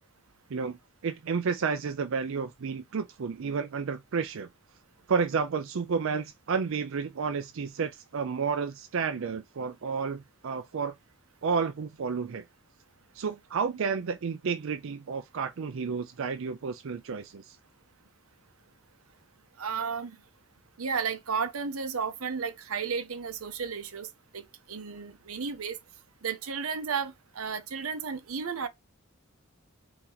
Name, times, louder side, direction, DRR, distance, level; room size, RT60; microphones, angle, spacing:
voice 1, 1.0-4.5 5.1-10.9 11.4-12.4 13.1-17.6, right 5 dB, 65° right, 0.5 m, -31 dB
voice 2, 19.6-20.2 20.8-24.1 24.3-24.4 24.7-25.8 26.2-28.7, right 6 dB, 90° right, 0.8 m, -33 dB
4.3 x 2.9 x 3.9 m
head